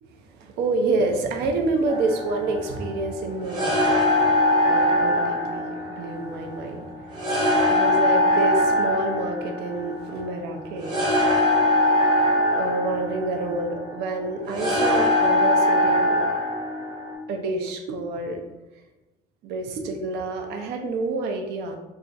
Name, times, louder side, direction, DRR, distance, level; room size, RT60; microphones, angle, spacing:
voice 1, 0.2-4.4 4.7-7.3 7.6-11.0 12.6-16.2 17.3-18.4 19.4-21.8, right 3 dB, 75° right, 4 dB, 0.5 m, -28 dB
sound 1, 1.9-17.1, left 1 dB, 25° right, 0.9 m, -22 dB
2.4 x 2.4 x 3.9 m, 1.0 s
cardioid pair, 110°, 17 cm